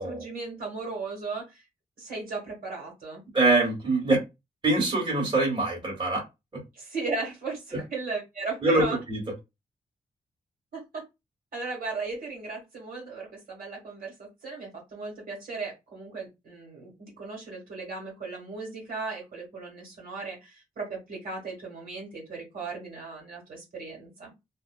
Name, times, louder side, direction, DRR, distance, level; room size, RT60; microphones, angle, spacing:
voice 1, 0.0-1.6 2.0-3.2 6.7-9.0 10.7-11.0 11.5-24.3, right 4 dB, 65° right, 1.4 m, -36 dB
voice 2, 3.3-4.2 4.6-6.2 8.6-9.2, right 2 dB, 30° right, 1.5 m, -24 dB
2.7 x 2.1 x 2.3 m
cardioid pair, 90°, 16 cm